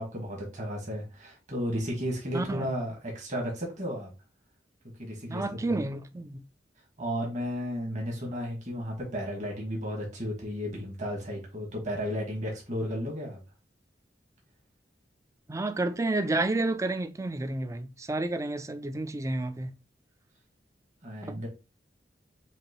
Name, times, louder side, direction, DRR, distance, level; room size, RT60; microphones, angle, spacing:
voice 1, 0.0-4.1 5.0-5.8 7.0-13.4 21.0-21.5, equal, 45° right, 1.6 m, -33 dB
voice 2, 2.3-2.7 5.3-6.4 15.5-19.7 21.2-21.5, right 2 dB, 20° right, 0.4 m, -30 dB
5.8 x 2.6 x 3.0 m
head